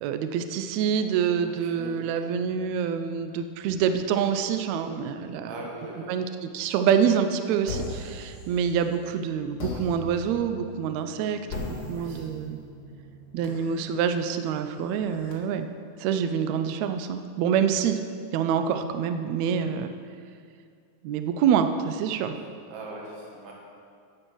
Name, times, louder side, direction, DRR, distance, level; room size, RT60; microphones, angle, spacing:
voice 1, 0.0-5.5 6.1-12.6 13.3-15.7 16.0-18.0 18.3-19.9 21.0-22.4, right 7 dB, 80° right, 8 dB, 1.6 m, -26 dB
voice 2, 1.4-2.3 5.4-6.2 11.9-12.3 22.7-23.5, right 2 dB, 50° right, -2 dB, 2.5 m, -41 dB
sound 1, 7.7-9.0 9.6-15.3, left 2 dB, 40° left, 1.6 m, -40 dB
9.2 x 8.1 x 6.2 m, 2.2 s
omnidirectional pair, 3.9 m